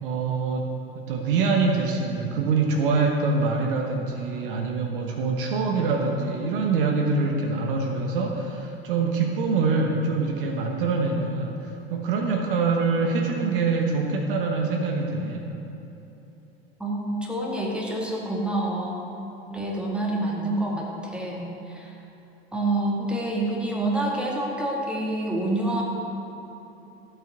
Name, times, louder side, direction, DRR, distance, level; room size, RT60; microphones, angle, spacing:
voice 1, 0.0-15.5, right 4 dB, 55° right, 2 dB, 1.1 m, -25 dB
voice 2, 16.8-19.1 19.5-21.9 22.5-25.8, right 1 dB, 5° right, -2 dB, 2.0 m, -27 dB
14.5 x 7.7 x 5.1 m, 2.9 s
figure-of-eight pair, 85°, 31 cm